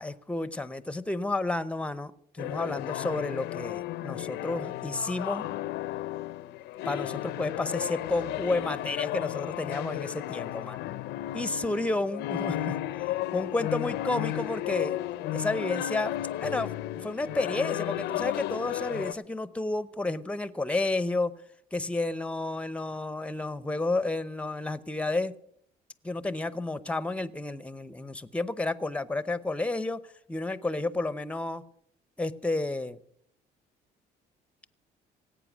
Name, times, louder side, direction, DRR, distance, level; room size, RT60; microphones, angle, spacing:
voice 1, 0.0-5.5 6.8-10.8 11.3-12.8 13.3-15.0 15.3-16.1 16.4-21.3 21.7-25.3 26.0-30.0 30.3-31.6 32.2-33.0, left 2 dB, 5° left, 16 dB, 0.7 m, -31 dB
sound 1, 2.4-19.1, left 14 dB, 85° left, 0.6 m, -33 dB
17.5 x 8.6 x 6.1 m, 0.68 s
cardioid pair, 110°, 17 cm